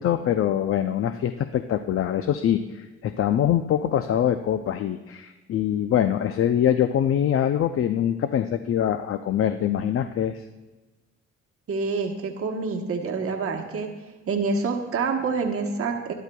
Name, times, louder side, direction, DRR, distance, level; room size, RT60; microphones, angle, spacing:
voice 1, 0.0-10.4, left 10 dB, 50° left, 9 dB, 0.4 m, -24 dB
voice 2, 11.7-13.9 14.3-16.1, right 4 dB, 50° right, 2 dB, 1.1 m, -27 dB
12.5 x 11.0 x 2.3 m, 1.2 s
cardioid pair, 90°, 30 cm